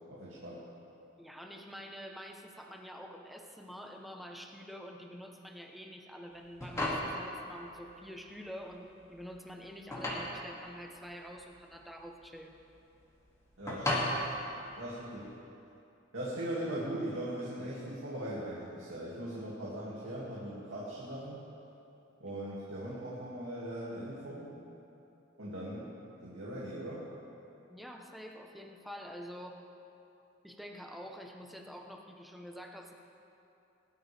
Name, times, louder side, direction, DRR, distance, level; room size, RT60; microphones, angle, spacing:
voice 1, 0.1-0.6 13.6-14.1 14.8-15.3 16.1-21.5 22.2-24.5 25.4-25.9 26.2-27.1, right 1 dB, 75° right, -7 dB, 2.4 m, -39 dB
voice 2, 1.2-12.6 27.7-29.7 30.4-32.9, equal, ahead, 2 dB, 0.9 m, -47 dB
sound 1, 6.3-15.3, left 1 dB, 15° left, 2.4 m, -38 dB
21.0 x 12.5 x 3.5 m, 2.8 s
head